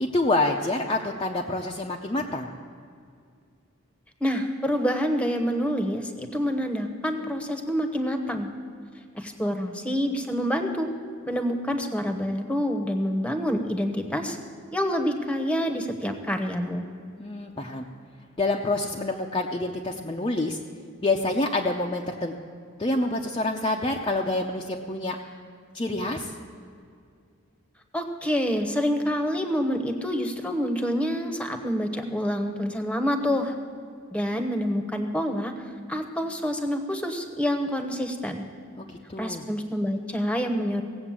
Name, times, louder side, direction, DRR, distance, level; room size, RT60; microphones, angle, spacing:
voice 1, 0.0-2.5 17.2-17.9 18.4-20.6 21.0-22.3 22.8-25.2 25.7-26.3 38.8-39.4, left 2 dB, 25° left, 0 dB, 0.6 m, -27 dB
voice 2, 4.2-8.5 9.1-10.9 11.3-14.4 14.7-16.8 27.9-33.5 34.1-35.5 35.9-38.4 39.2-40.8, equal, 5° left, 6 dB, 1.0 m, -27 dB
17.0 x 7.9 x 7.4 m, 2.3 s
head